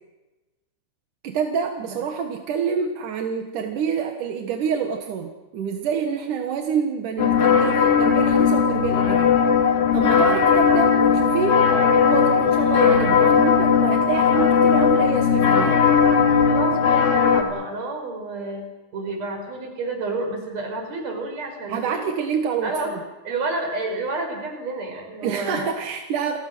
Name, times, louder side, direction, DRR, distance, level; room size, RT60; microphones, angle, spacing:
voice 1, 1.2-9.4 9.9-15.8 21.7-23.0 25.2-26.4, right 6 dB, 55° right, 3 dB, 2.5 m, -27 dB
sound 1, 7.2-17.4, left 6 dB, 55° left, 3.5 m, -18 dB
voice 2, 16.3-18.7 18.9-22.1 22.6-22.9 23.2-25.7, right 2 dB, 35° right, 3 dB, 6.8 m, -30 dB
29.5 x 21.5 x 6.3 m, 1.1 s
omnidirectional pair, 5.3 m